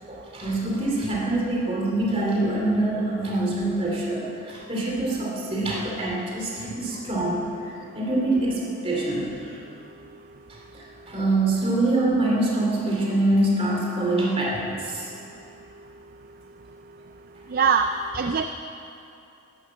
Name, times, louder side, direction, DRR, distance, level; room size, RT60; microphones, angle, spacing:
voice 1, 0.1-9.6 10.7-15.1, right 2 dB, 25° right, -3 dB, 2.7 m, -25 dB
voice 2, 17.5-18.4, right 6 dB, 45° right, 8 dB, 0.4 m, -22 dB
11.5 x 10.0 x 7.6 m, 2.7 s
head